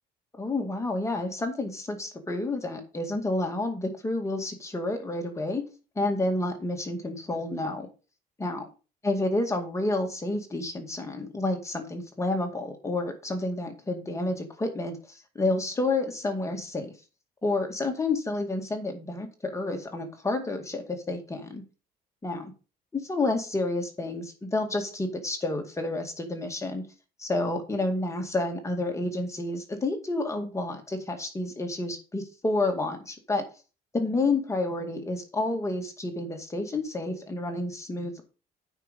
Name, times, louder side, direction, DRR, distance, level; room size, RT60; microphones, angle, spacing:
voice 1, 0.4-5.6 6.0-7.9 8.4-8.6 9.0-16.9 17.4-21.6 22.2-22.4 22.9-26.8 27.2-33.4 33.9-38.2, left 2 dB, 15° left, 4 dB, 2.2 m, -30 dB
9.2 x 5.9 x 5.4 m, 0.33 s
cardioid pair, 110°, 17 cm